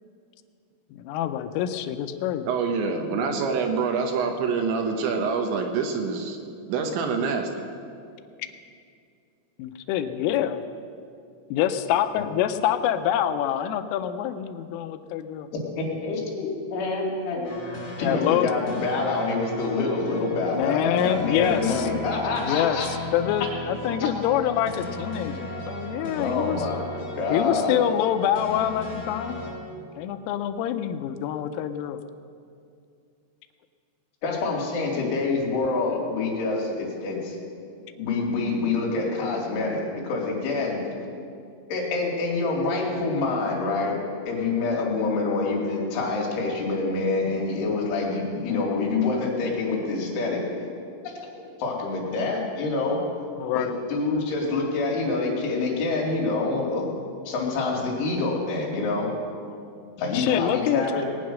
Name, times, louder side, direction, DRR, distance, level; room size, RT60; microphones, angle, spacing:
voice 1, 0.9-2.4 9.6-10.6 11.5-15.5 18.0-18.5 20.3-21.9 22.5-26.6 27.3-29.4 30.0-32.0 53.4-53.7 60.1-60.9, left 10 dB, 85° left, 9 dB, 3.3 m, -26 dB
voice 2, 2.5-6.4 6.7-7.6, right 5 dB, 75° right, 4 dB, 3.1 m, -26 dB
voice 3, 15.8-22.9 24.0-24.1 26.2-26.9 27.2-27.8 34.2-37.4 37.9-40.8 41.7-44.0 44.3-50.4 51.0-53.0 53.5-56.9 57.3-59.1 60.0-61.1, left 3 dB, 70° left, -2 dB, 4.8 m, -26 dB
sound 1, 17.4-29.5, left 1 dB, 40° left, 6.0 m, -36 dB
20.5 x 9.4 x 6.3 m, 2.4 s
omnidirectional pair, 5.8 m